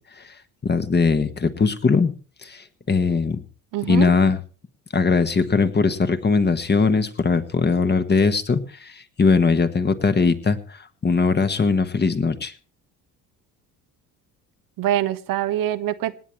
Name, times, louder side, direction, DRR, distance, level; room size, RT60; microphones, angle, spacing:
voice 1, 0.6-2.1 2.4-3.4 3.9-4.4 4.9-12.5, left 4 dB, 25° left, 10 dB, 1.6 m, -20 dB
voice 2, 3.7-4.1 14.8-16.2, right 12 dB, 50° right, 11 dB, 1.1 m, -24 dB
26.0 x 10.0 x 3.2 m, 0.38 s
figure-of-eight pair, 55°, 44 cm